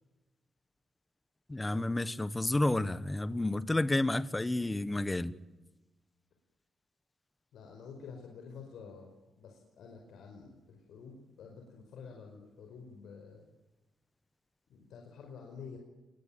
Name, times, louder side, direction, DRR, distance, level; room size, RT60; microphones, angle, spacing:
voice 1, 1.5-5.3, left 2 dB, 15° left, 15 dB, 1.2 m, -30 dB
voice 2, 7.5-9.1 9.4-13.4 14.7-15.8, left 5 dB, 85° left, 2 dB, 5.4 m, -49 dB
28.0 x 21.5 x 9.2 m, 1.1 s
cardioid pair, 135°, 0 cm